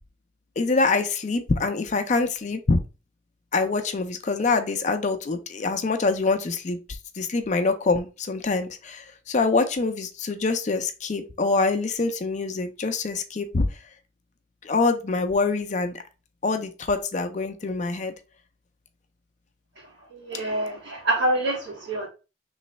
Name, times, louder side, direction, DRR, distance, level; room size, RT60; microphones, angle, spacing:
voice 1, 0.6-2.8 3.5-13.7 14.6-16.0 16.4-18.1, left 3 dB, 35° left, 0.4 m, -25 dB
voice 2, 20.1-22.1, right 1 dB, 60° right, 1.9 m, -26 dB
3.1 x 3.0 x 4.1 m
head